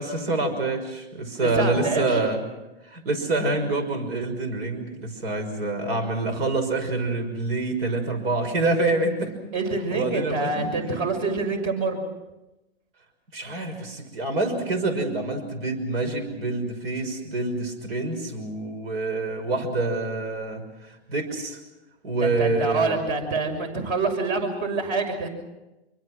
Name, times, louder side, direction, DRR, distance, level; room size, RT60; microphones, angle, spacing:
voice 1, 0.0-2.4 2.8-9.3 9.9-11.1 13.3-21.6 22.0-23.0, right 2 dB, 70° right, 8 dB, 6.1 m, -26 dB
voice 2, 1.4-2.2 9.5-12.0 22.2-25.3, right 3 dB, 45° right, 6 dB, 6.5 m, -26 dB
27.0 x 24.0 x 6.2 m, 1.0 s
hypercardioid pair, 130°, 32 cm